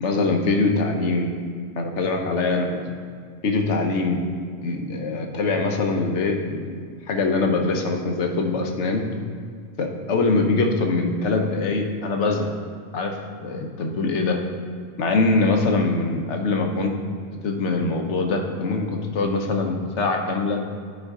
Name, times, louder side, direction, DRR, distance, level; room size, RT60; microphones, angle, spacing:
voice 1, 0.0-1.3 1.7-2.8 3.4-4.2 4.6-6.8 7.1-9.1 9.8-12.6 12.9-14.4 15.0-16.9 17.4-20.6, left 3 dB, 75° left, 3 dB, 1.1 m, -23 dB
9.9 x 5.1 x 3.7 m, 2.1 s
omnidirectional pair, 1.2 m